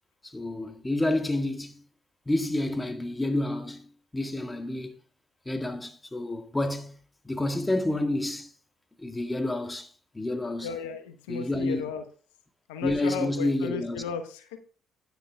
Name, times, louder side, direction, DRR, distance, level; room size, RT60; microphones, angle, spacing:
voice 1, 0.2-1.8 2.2-3.9 4.1-4.9 5.4-7.0 7.2-8.5 9.0-9.9 10.1-10.7 11.3-11.9 12.8-14.0, left 1 dB, 15° left, 1.8 m, -29 dB
voice 2, 10.6-12.0 12.7-14.6, left 6 dB, 80° left, 1.0 m, -35 dB
9.9 x 9.6 x 3.5 m
hypercardioid pair, 55°, 0 cm